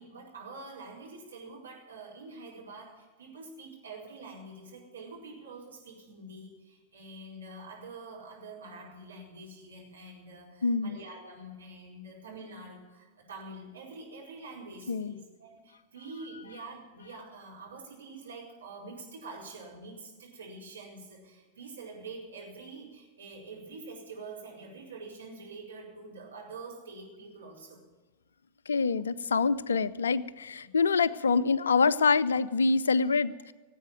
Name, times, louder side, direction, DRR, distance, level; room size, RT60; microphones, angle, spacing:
voice 1, 0.0-27.9 30.6-30.7, right 3 dB, 70° right, -3 dB, 4.9 m, -46 dB
voice 2, 10.6-11.0 14.9-15.2 28.7-33.5, left 4 dB, 70° left, 19 dB, 0.5 m, -26 dB
18.0 x 8.5 x 9.0 m, 1.3 s
figure-of-eight pair, 90°, 0 cm